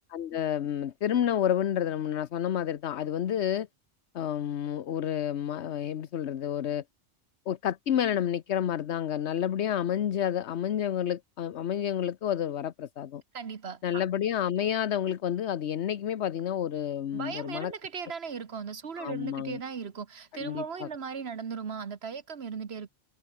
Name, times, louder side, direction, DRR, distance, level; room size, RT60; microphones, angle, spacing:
voice 1, 0.1-3.7 4.1-6.8 7.5-13.2 13.8-17.7 19.0-19.6 20.4-20.9, left 10 dB, 75° left, 1.1 m, -30 dB
voice 2, 13.3-14.0 17.1-22.9, right 6 dB, 65° right, 1.5 m, -37 dB
omnidirectional pair, 1.2 m